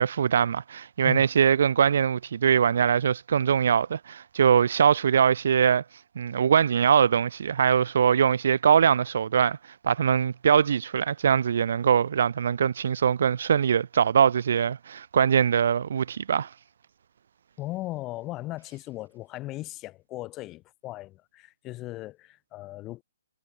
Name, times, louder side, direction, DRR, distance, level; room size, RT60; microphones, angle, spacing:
voice 1, 0.0-5.8 6.2-9.6 9.8-16.5, right 7 dB, 55° right, 0.7 m, -22 dB
voice 2, 17.6-23.0, left 17 dB, 15° left, 1.2 m, -37 dB
hypercardioid pair, 170°, 0 cm